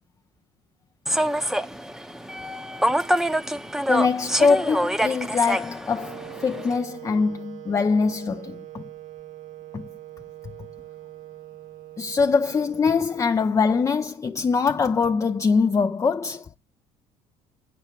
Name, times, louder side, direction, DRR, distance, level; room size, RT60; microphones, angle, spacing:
Human voice / Subway metro underground, 1.1-6.8, equal, 5° right, 0.8 m, -26 dB
voice 1, 3.9-8.8 9.7-9.9 12.0-16.5, left 5 dB, 25° left, 0.5 m, -23 dB
Wind instrument woodwind instrument, 5.9-13.9, right 13 dB, 75° right, 0.8 m, -43 dB
8.8 x 7.0 x 4.4 m
cardioid pair, 105°, 13 cm